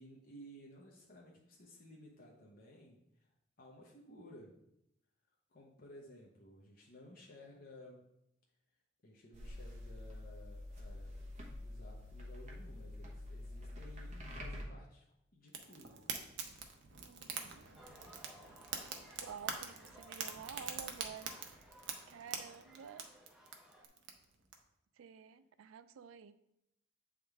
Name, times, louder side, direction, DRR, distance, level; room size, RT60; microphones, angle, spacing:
voice 1, 0.0-3.3 3.6-4.6 5.5-8.1 9.0-11.3 11.6-16.1, equal, 45° left, -3 dB, 0.8 m, -56 dB
sound 1, 9.3-14.6, left 1 dB, 35° right, 1.0 m, -47 dB
Fire, 15.5-24.5, right 6 dB, 60° right, 0.7 m, -45 dB
voice 2, 17.0-17.7 19.2-21.5 22.1-23.1 25.0-26.4, right 7 dB, 85° right, 13 dB, 0.3 m, -51 dB
sound 2, 17.8-23.9, equal, 5° right, 0.7 m, -60 dB
7.7 x 3.6 x 3.4 m, 0.82 s
head